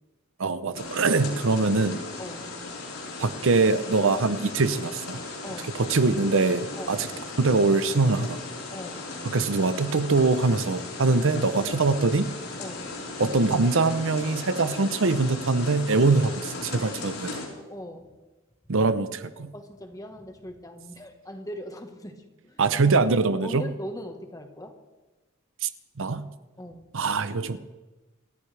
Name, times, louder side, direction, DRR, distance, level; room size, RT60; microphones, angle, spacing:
voice 1, 0.4-2.0 3.2-5.2 5.7-7.1 7.4-8.4 9.2-12.3 13.2-17.4 18.7-19.5 22.6-23.7 25.6-25.7 26.0-26.2 26.9-27.6, right 3 dB, 65° right, 12 dB, 0.7 m, -23 dB
sound 1, 0.7-17.5, left 3 dB, 85° left, 4.3 m, -37 dB
voice 2, 2.2-2.5 5.4-5.7 6.8-7.0 8.7-9.1 11.1-11.2 12.6-12.9 17.6-18.1 19.5-22.6 23.4-24.8 26.6-26.8, equal, 15° left, 6 dB, 1.4 m, -40 dB
28.5 x 13.5 x 3.4 m, 1.2 s
head